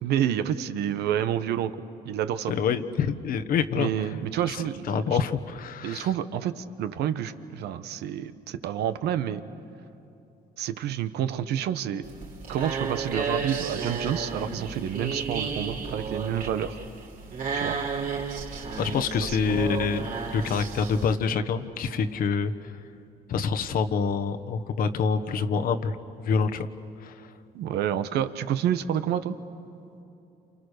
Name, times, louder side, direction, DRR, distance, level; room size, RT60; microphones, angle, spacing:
voice 1, 0.0-1.7 2.0-2.5 3.8-5.2 5.8-9.4 10.6-12.1 12.5-16.8 17.5-17.8 19.2-19.7 27.5-29.3, right 10 dB, 75° right, 11 dB, 1.1 m, -29 dB
voice 2, 2.5-4.2 4.5-6.1 18.8-20.0 20.3-22.5 23.3-26.7 27.0-27.3, left 6 dB, 60° left, 8 dB, 1.3 m, -26 dB
sound 1, 12.0-21.1, right 5 dB, 55° right, 3.8 m, -32 dB
29.0 x 28.0 x 6.7 m, 2.8 s
cardioid pair, 110°, 17 cm